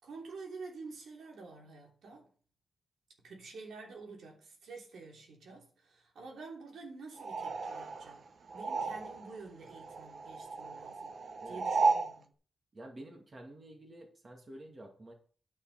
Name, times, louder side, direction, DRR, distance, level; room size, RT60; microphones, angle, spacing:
voice 1, 0.0-2.3 3.2-8.2 8.5-11.1 11.4-12.3, right 4 dB, 85° right, 3.0 m, -49 dB
sound 1, 7.2-9.4 9.7-12.1, right 4 dB, 50° right, 1.0 m, -34 dB
voice 2, 12.7-15.1, right 1 dB, 30° right, 2.2 m, -50 dB
9.9 x 5.7 x 5.7 m
wide cardioid pair, 125°, 0 cm